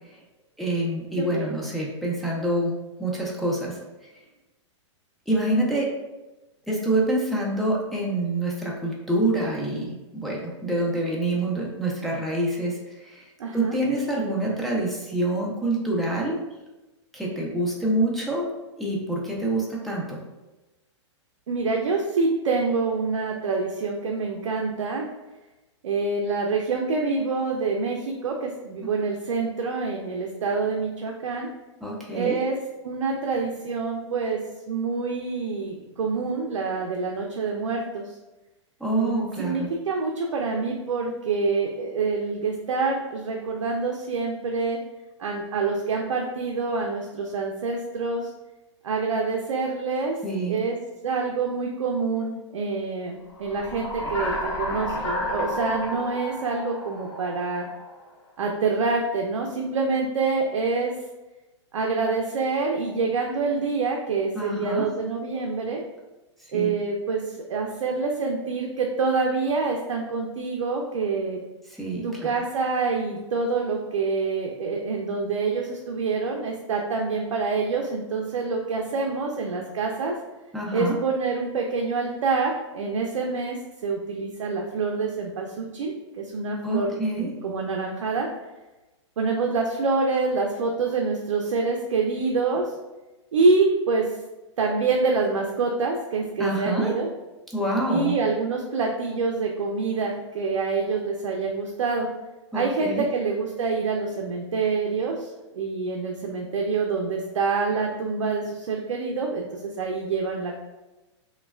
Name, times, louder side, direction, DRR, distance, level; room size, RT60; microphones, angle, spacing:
voice 1, 0.6-2.7 3.0-3.7 5.3-5.9 6.7-12.7 13.0-13.3 13.5-16.4 17.1-18.5 18.8-20.2 31.8-32.4 38.8-39.7 50.2-50.6 64.3-64.9 66.5-66.7 71.8-72.3 80.5-80.9 86.6-87.3 96.4-96.9 97.5-98.1 102.5-103.0, right 1 dB, ahead, -4 dB, 0.4 m, -26 dB
voice 2, 1.2-1.6 13.4-13.8 21.5-25.1 25.8-31.5 32.1-32.6 32.8-34.4 34.7-38.1 38.9-44.8 45.2-48.3 48.8-50.2 50.5-50.8 51.0-57.7 58.4-60.9 61.7-65.8 66.5-71.4 72.0-80.1 80.7-83.6 83.8-88.3 89.2-92.7 93.3-94.1 94.6-97.1 97.9-102.1 102.5-110.6, right 4 dB, 85° right, 1 dB, 0.4 m, -26 dB
sound 1, 53.4-58.0, left 1 dB, 50° left, 0.9 m, -31 dB
3.0 x 2.1 x 2.2 m, 1.1 s
hypercardioid pair, 135°, 16 cm